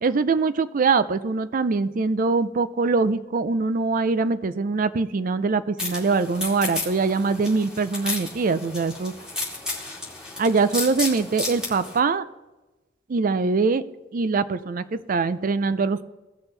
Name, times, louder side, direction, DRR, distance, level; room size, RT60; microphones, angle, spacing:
voice 1, 0.0-9.1 10.4-12.2 13.1-13.9 14.1-16.0, right 4 dB, 45° right, 14 dB, 0.4 m, -23 dB
sound 1, 5.8-12.0, left 2 dB, 5° right, 2.7 m, -33 dB
17.5 x 6.2 x 3.3 m, 1.1 s
head